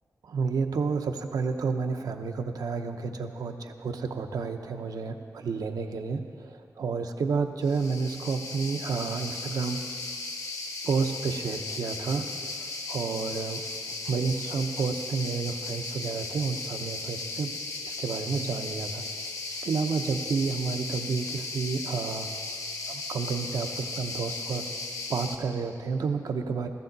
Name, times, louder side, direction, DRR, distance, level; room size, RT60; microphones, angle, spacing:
voice 1, 0.2-9.8 10.8-13.6 14.0-17.5 17.8-19.3 19.6-22.3 22.9-24.7 25.1-26.7, right 5 dB, 85° right, 6 dB, 0.8 m, -30 dB
sound 1, 7.6-25.4, left 3 dB, 60° left, 1.0 m, -36 dB
15.5 x 15.0 x 4.0 m, 2.4 s
wide cardioid pair, 180°, 6 cm